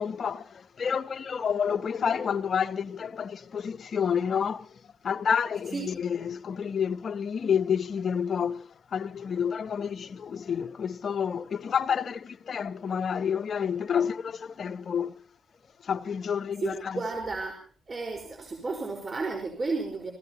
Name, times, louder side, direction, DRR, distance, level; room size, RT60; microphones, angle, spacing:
voice 1, 0.0-4.7 5.0-15.2 15.8-17.0, left 7 dB, 55° left, 1.0 m, -29 dB
voice 2, 16.6-17.6 17.9-20.1, right 3 dB, 35° right, 4.6 m, -32 dB
28.5 x 17.0 x 2.9 m
cardioid pair, 95°, 0 cm